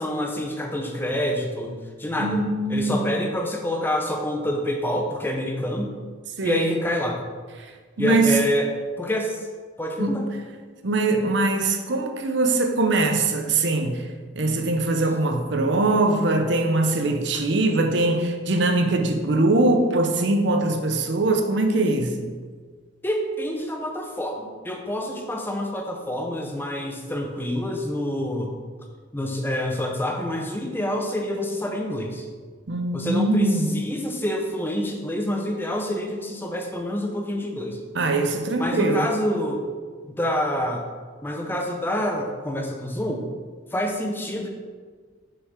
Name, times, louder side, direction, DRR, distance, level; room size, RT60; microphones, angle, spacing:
voice 1, 0.0-2.4 2.7-5.9 6.4-7.2 8.0-9.5 9.8-10.3 23.0-28.5 29.1-32.3 32.9-37.8 38.6-39.7 40.1-40.9 41.2-43.2 43.7-44.5, equal, 10° left, 0.6 m, -27 dB
voice 2, 2.2-3.1 6.4-6.7 7.6-7.7 8.0-8.4 10.0-10.2 10.8-14.1 14.4-22.3 32.7-33.7 37.9-39.1, right 2 dB, 60° right, 0.6 m, -22 dB
6.4 x 5.9 x 3.7 m
head